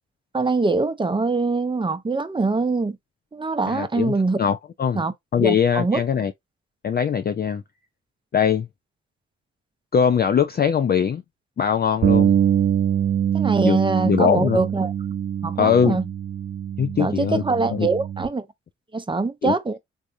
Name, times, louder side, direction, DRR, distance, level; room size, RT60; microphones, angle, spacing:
voice 1, 0.3-3.0 3.3-4.4 4.9-5.1 5.4-6.0 13.3-14.9 15.4-16.1 17.0-18.5 18.9-19.8, right 3 dB, 15° right, 0.6 m, -23 dB
voice 2, 3.7-5.0 5.3-6.3 6.8-7.6 8.3-8.7 9.9-11.2 11.6-12.4 13.6-13.8 14.0-14.6 15.6-16.0 16.8-17.4 17.7-17.9 19.4-19.5, left 7 dB, 35° left, 0.4 m, -21 dB
Bass guitar, 12.0-18.3, right 9 dB, 60° right, 0.9 m, -23 dB
3.5 x 2.5 x 2.6 m
supercardioid pair, 45°, 29 cm